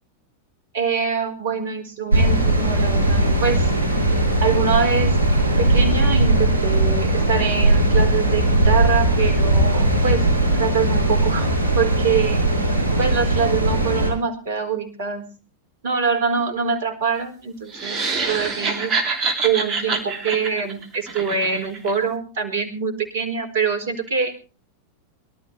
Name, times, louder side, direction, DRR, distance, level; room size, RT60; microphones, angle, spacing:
voice 1, 0.7-3.7 4.4-5.2 5.6-10.3 10.5-12.4 13.0-15.3 15.8-18.9 19.4-24.3, right 6 dB, 55° right, 6 dB, 4.4 m, -24 dB
sound 1, 2.1-14.1, right 1 dB, 85° left, 5.7 m, -19 dB
sound 2, 17.7-21.9, right 4 dB, 35° right, 3.2 m, -26 dB
23.5 x 13.0 x 3.3 m, 0.34 s
figure-of-eight pair, 90°, 0 cm